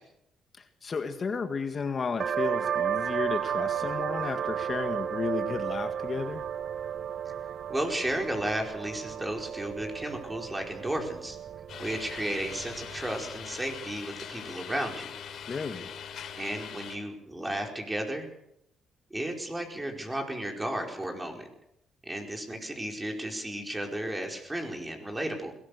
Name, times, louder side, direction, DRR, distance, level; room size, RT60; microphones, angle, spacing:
voice 1, 0.6-6.4 15.5-15.9, left 5 dB, 40° left, 7 dB, 1.8 m, -33 dB
sound 1, 2.2-13.5, right 9 dB, 55° right, 0.8 m, -34 dB
voice 2, 7.7-11.4 11.8-15.1 16.4-18.3 19.1-21.5 22.0-25.5, right 1 dB, 15° right, 3 dB, 4.9 m, -33 dB
sound 2, 11.7-17.0, left 8 dB, 70° left, 3.3 m, -42 dB
21.5 x 18.5 x 6.7 m, 0.79 s
cardioid pair, 90°, 0 cm